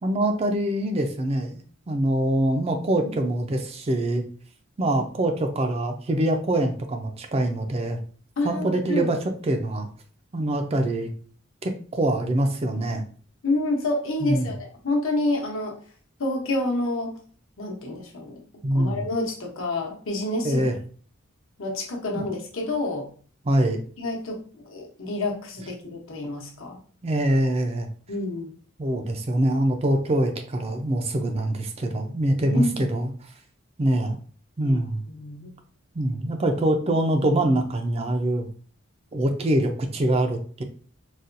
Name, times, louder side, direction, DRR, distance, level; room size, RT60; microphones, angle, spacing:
voice 1, 0.0-4.2 4.8-8.0 8.4-9.2 9.4-9.9 10.3-11.1 11.6-13.0 14.2-14.5 18.6-19.1 20.4-20.7 22.1-22.2 23.5-23.8 27.0-27.9 28.8-33.1 33.8-34.2 34.6-35.0 35.9-38.5 39.1-40.6, right 1 dB, 30° right, 4 dB, 0.4 m, -24 dB
voice 2, 8.4-9.1 13.4-15.7 16.2-17.2 17.6-20.7 21.6-23.1 24.0-26.8 28.1-28.5 32.5-32.9 34.6-34.8 35.1-35.5, left 2 dB, 75° left, 0 dB, 0.9 m, -28 dB
4.0 x 2.2 x 2.5 m, 0.44 s
head